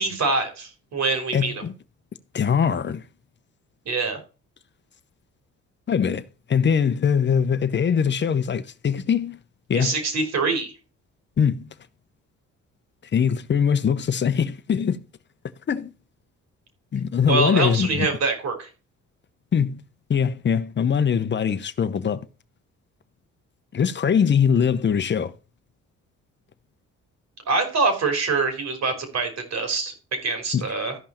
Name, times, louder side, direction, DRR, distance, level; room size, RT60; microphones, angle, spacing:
voice 1, 0.0-1.5 3.9-4.2 9.7-10.7 17.3-18.7 27.5-31.0, right 3 dB, 60° right, 3.7 m, -24 dB
voice 2, 1.3-1.7 2.3-3.0 5.9-9.4 9.7-9.9 11.4-11.7 13.1-15.0 15.7-15.9 16.9-18.1 19.5-19.8 20.1-22.2 23.7-25.3 30.5-30.6, left 7 dB, 35° left, 0.8 m, -22 dB
13.5 x 5.5 x 4.3 m
cardioid pair, 90°, 30 cm